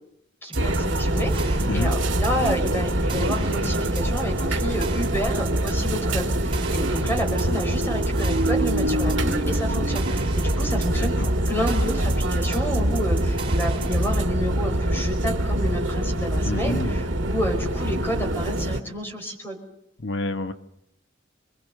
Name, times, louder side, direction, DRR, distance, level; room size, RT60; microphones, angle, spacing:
voice 1, 0.4-19.6, equal, 10° left, 3 dB, 5.0 m, -30 dB
sound 1, 0.5-14.2, right 4 dB, 25° right, 5.1 m, -37 dB
sound 2, 0.5-18.8, right 1 dB, 85° right, 2.0 m, -24 dB
voice 2, 10.9-11.3 16.5-17.0 20.0-20.5, left 2 dB, 70° left, 8 dB, 1.2 m, -28 dB
27.5 x 22.0 x 6.5 m, 0.80 s
head